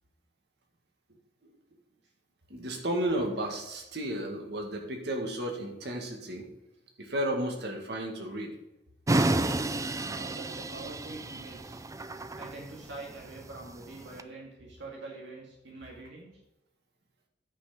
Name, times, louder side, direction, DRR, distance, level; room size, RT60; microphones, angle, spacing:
voice 1, 2.5-6.5 7.0-8.5, right 1 dB, 65° right, 2 dB, 1.9 m, -33 dB
sound 1, 9.1-14.2, right 2 dB, 20° right, 0.4 m, -31 dB
voice 2, 10.1-11.8 12.4-16.3, right 2 dB, 90° right, -2 dB, 2.1 m, -45 dB
9.9 x 5.7 x 5.1 m, 0.93 s
head